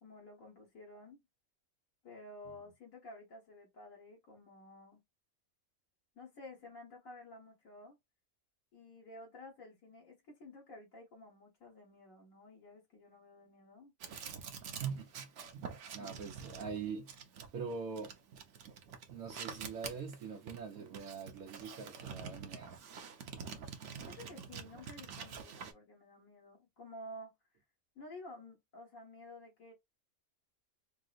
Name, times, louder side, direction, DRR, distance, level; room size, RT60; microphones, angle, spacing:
voice 1, 0.0-1.2 2.0-5.0 6.2-8.0 8.7-13.9 16.0-16.2 24.1-27.3 28.0-29.7, left 1 dB, 75° left, 1.8 m, -52 dB
sound 1, 14.0-25.7, right 6 dB, 60° right, 0.9 m, -47 dB
voice 2, 14.8-17.1 17.5-18.2 19.1-22.8, right 5 dB, 90° right, 1.2 m, -43 dB
4.5 x 2.0 x 2.4 m
omnidirectional pair, 1.4 m